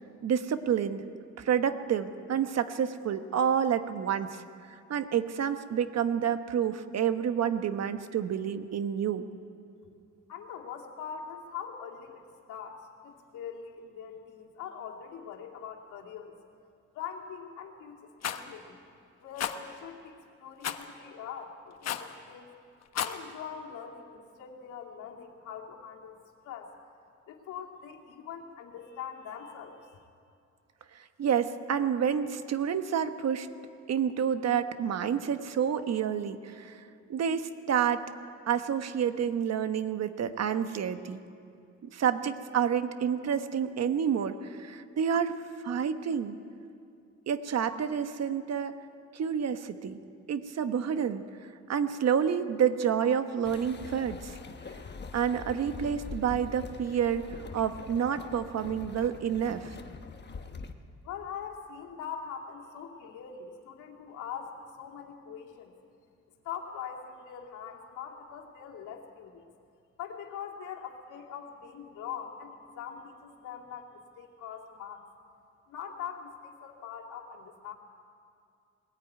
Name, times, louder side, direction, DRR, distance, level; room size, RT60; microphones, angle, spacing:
voice 1, 0.2-1.0 1.4-4.4 4.9-9.3 30.9-33.5 33.9-36.8 37.1-38.0 38.5-41.2 41.9-45.4 45.6-46.4 47.3-48.7 49.1-50.0 50.3-51.2 51.7-54.3 55.1-57.3 57.5-59.7, right 8 dB, 60° right, 10 dB, 1.1 m, -29 dB
voice 2, 10.3-16.3 16.9-18.8 19.2-22.5 22.9-26.2 26.4-26.7 27.3-30.1 61.0-65.7 66.4-69.5 70.0-75.0 75.7-77.7, left 7 dB, 85° left, 0 dB, 2.5 m, -42 dB
Rattle, 18.2-18.4 19.4-19.6 20.6-20.9 21.8-22.1 22.8-23.2, left 9 dB, 55° left, 1.2 m, -32 dB
sound 1, 53.4-60.7, left 4 dB, 35° left, 1.3 m, -43 dB
20.0 x 14.0 x 9.3 m, 2.5 s
cardioid pair, 90°, 30 cm